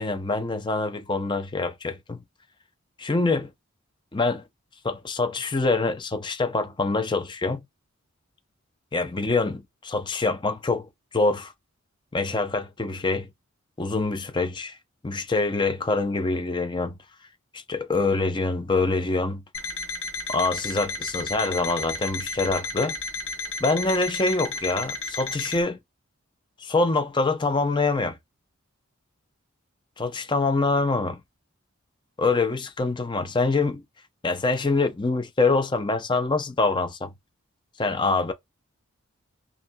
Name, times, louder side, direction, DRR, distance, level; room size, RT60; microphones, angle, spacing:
voice 1, 0.0-2.2 3.0-3.5 4.1-4.4 4.8-7.6 8.9-11.5 12.1-13.3 13.8-14.8 15.0-17.0 17.5-19.4 20.3-23.0 23.6-25.8 26.6-28.2 30.0-31.2 32.2-33.8 34.2-37.1 37.8-38.3, left 3 dB, 20° left, 0.5 m, -25 dB
Alarm, 19.5-25.6, left 3 dB, 70° left, 0.9 m, -33 dB
5.4 x 2.7 x 2.2 m
head